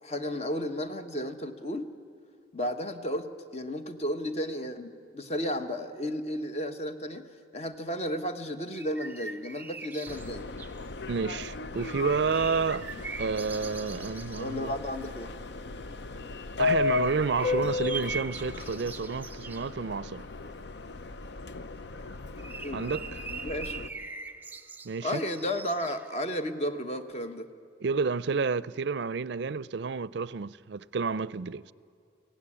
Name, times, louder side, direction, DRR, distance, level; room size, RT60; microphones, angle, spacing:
voice 1, 0.0-1.9 2.5-7.3 7.5-10.5 14.4-15.3 22.6-22.8 23.4-23.9 25.0-27.5, equal, 35° left, 1.1 m, -33 dB
sound 1, 8.7-10.9 11.8-14.5 16.7-19.7 21.9-26.5, right 4 dB, 10° right, 0.6 m, -42 dB
Subway metro underground, 10.1-23.9, left 4 dB, 60° left, 0.6 m, -35 dB
voice 2, 11.1-12.9 13.2-14.7 16.6-20.3 22.7-23.1 24.8-25.2 27.8-31.7, right 5 dB, 60° right, 0.5 m, -30 dB
23.0 x 17.0 x 10.0 m
head